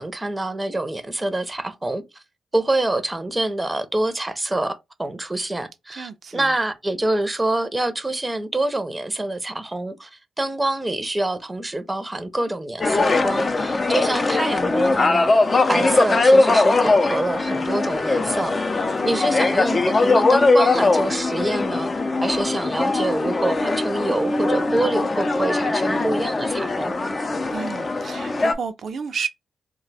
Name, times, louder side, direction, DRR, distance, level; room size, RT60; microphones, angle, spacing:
voice 1, 0.0-2.2 2.5-15.3 15.7-18.5 19.0-21.9 22.2-27.0, right 2 dB, 15° right, 0.5 m, -26 dB
voice 2, 5.9-6.5 19.0-19.4 27.5-29.3, right 6 dB, 65° right, 0.4 m, -32 dB
sound 1, 12.8-28.5, left 3 dB, 35° left, 0.4 m, -20 dB
2.4 x 2.2 x 4.0 m
cardioid pair, 90°, 0 cm